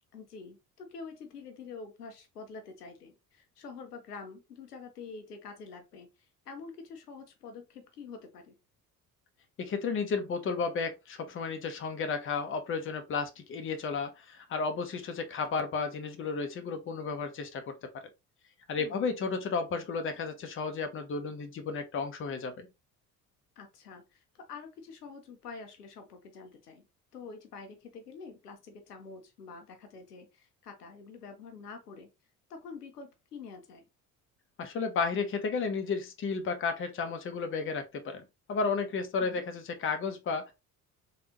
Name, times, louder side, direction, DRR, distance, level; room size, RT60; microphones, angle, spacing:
voice 1, 0.1-6.1 6.5-8.6 18.8-19.1 23.6-26.8 27.1-32.1 32.5-33.8 39.2-39.4, left 4 dB, 85° left, 0.6 m, -46 dB
voice 2, 9.6-17.9 18.7-22.7 34.6-38.2 38.5-40.5, left 4 dB, 25° left, 0.7 m, -33 dB
3.4 x 2.3 x 2.8 m
figure-of-eight pair, 55°, 46 cm